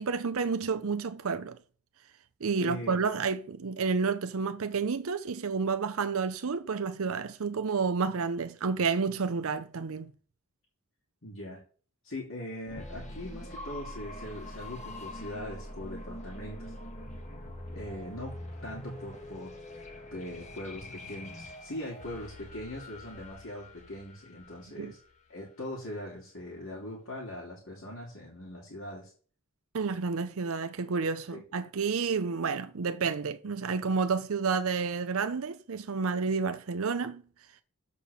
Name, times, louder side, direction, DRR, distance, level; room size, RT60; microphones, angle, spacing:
voice 1, 0.0-1.6 2.4-10.1 24.8-24.9 29.7-37.2, right 5 dB, 70° right, 0.6 m, -30 dB
voice 2, 2.6-3.0 11.2-11.6 12.0-16.7 17.7-18.4 18.6-19.5 20.1-25.0 25.3-29.1 31.3-31.4, left 1 dB, 60° left, 2.8 m, -41 dB
Unstable Synth, 12.7-25.4, left 1 dB, 30° left, 1.4 m, -44 dB
Piano, 13.6-19.7, right 2 dB, 45° right, 1.7 m, -53 dB
6.8 x 5.2 x 6.8 m
head